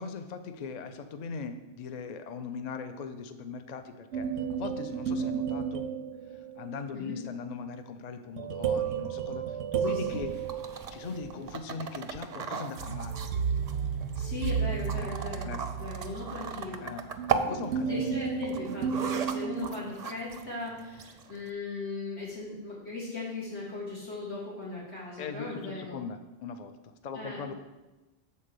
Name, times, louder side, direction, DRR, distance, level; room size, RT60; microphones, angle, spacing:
voice 1, 0.0-4.3 4.6-5.8 6.6-9.4 9.7-10.3 10.9-13.2 14.9-15.1 15.3-15.6 16.8-17.1 17.5-18.2 25.2-26.8 27.0-27.5, left 5 dB, 50° left, 8 dB, 0.5 m, -39 dB
sound 1, 4.1-6.7 8.4-11.3 12.8-20.1, right 7 dB, 90° right, 0.9 m, -33 dB
voice 2, 6.9-7.2 9.9-10.2 14.1-16.9 17.9-26.0 27.1-27.5, left 3 dB, 90° left, -8 dB, 3.1 m, -38 dB
sound 2, 9.8-21.5, right 6 dB, 50° right, 0.5 m, -38 dB
7.3 x 4.1 x 6.6 m, 1.1 s
omnidirectional pair, 1.1 m